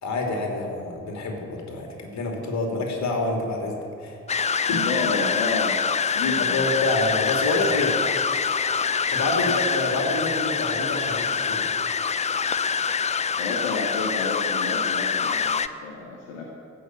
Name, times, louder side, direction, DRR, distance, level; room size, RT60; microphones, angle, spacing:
voice 1, 0.0-4.1 4.4-4.8 6.1-8.0 9.1-11.7, left 2 dB, 45° left, 1 dB, 2.9 m, -27 dB
sound 1, 4.3-15.7, left 6 dB, 15° left, 0.5 m, -25 dB
voice 2, 4.7-5.8 6.1-6.6 9.3-9.6 13.4-16.4, left 3 dB, 65° left, -1 dB, 1.5 m, -30 dB
14.5 x 6.1 x 8.9 m, 2.5 s
figure-of-eight pair, 50°, 40 cm